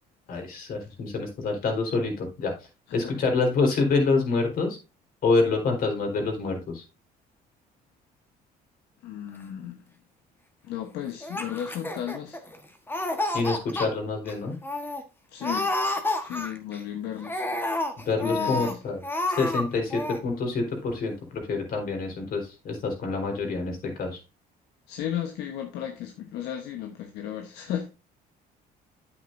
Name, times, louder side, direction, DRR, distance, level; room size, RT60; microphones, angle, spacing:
voice 1, 0.3-2.5 2.9-4.8 5.2-6.8 13.3-14.6 18.0-19.0 19.4-24.2, left 3 dB, 60° left, 3.9 m, -27 dB
voice 2, 9.0-9.8 10.6-12.4 15.3-15.7 16.2-17.4 18.2-18.8 24.9-27.9, left 10 dB, 85° left, 1.1 m, -34 dB
Laughter, 11.2-12.6 12.9-13.9 14.3-14.4 14.6-15.0 15.4-16.8 17.2-18.7 19.0-19.6 19.9-20.2, left 2 dB, 10° left, 1.3 m, -29 dB
9.1 x 8.5 x 2.6 m
cardioid pair, 110°, 17 cm